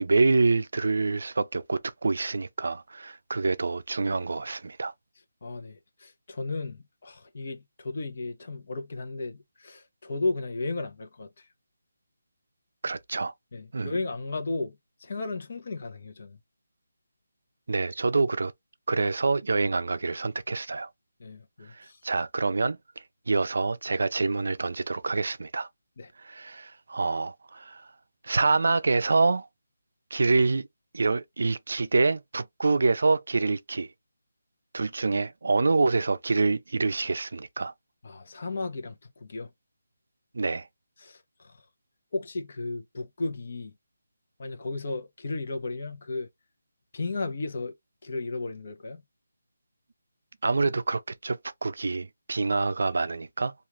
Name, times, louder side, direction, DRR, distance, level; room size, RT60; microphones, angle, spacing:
voice 1, 0.0-4.9 12.8-13.3 13.7-13.9 17.7-18.5 18.9-20.9 21.8-22.8 23.3-25.7 26.2-27.9 28.2-29.5 30.1-30.7 30.9-33.9 34.7-37.7 40.3-40.7 50.4-53.5, right 3 dB, 70° right, 0.4 m, -26 dB
voice 2, 5.4-11.4 13.5-14.8 15.0-16.4 21.2-22.0 26.0-26.1 38.0-39.5 41.0-41.6 42.1-43.7 44.4-46.3 46.9-47.7 48.0-49.0, left 3 dB, 55° left, 0.7 m, -34 dB
2.5 x 2.4 x 2.9 m
figure-of-eight pair, 165°, 0 cm